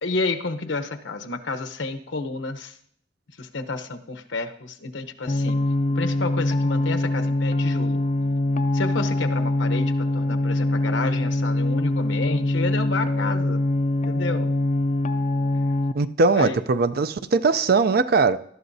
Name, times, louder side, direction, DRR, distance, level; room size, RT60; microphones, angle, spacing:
voice 1, 0.0-2.8 3.4-5.6 5.9-8.0 8.7-13.6 14.1-14.5 16.3-16.6, left 3 dB, 85° left, 6 dB, 0.9 m, -30 dB
sound 1, 5.3-15.9, left 1 dB, 40° left, 0.4 m, -23 dB
voice 2, 15.9-18.4, right 4 dB, 55° right, 13 dB, 0.5 m, -20 dB
19.5 x 12.5 x 2.7 m, 0.67 s
head